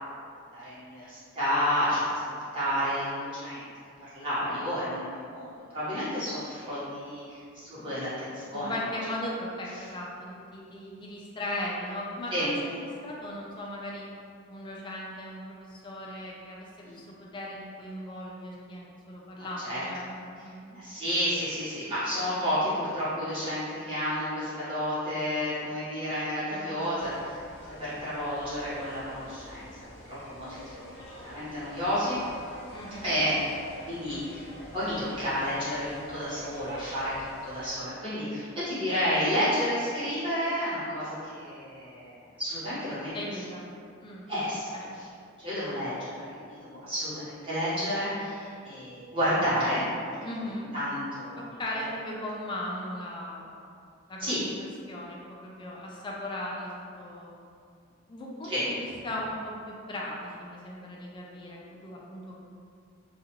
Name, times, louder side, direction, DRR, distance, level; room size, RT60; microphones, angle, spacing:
voice 1, 0.3-2.1 2.5-3.7 4.1-8.8 12.3-12.8 16.8-17.0 19.4-19.8 20.7-27.4 27.8-29.7 30.1-32.2 33.0-33.6 33.8-43.1 44.3-45.1 45.4-49.8 50.7-51.6 54.2-54.5 58.4-58.7, equal, 25° right, -13 dB, 1.1 m, -31 dB
voice 2, 8.5-14.1 14.5-20.8 26.5-27.1 32.7-33.1 43.1-43.7 44.0-44.3 44.7-44.9 50.2-50.7 51.4-53.6 54.1-54.5 54.9-57.3 58.1-62.4, left 1 dB, 25° left, -4 dB, 0.3 m, -38 dB
sound 1, 26.9-37.7, equal, 70° left, 0.7 m, -46 dB
2.5 x 2.3 x 2.9 m, 2.4 s
head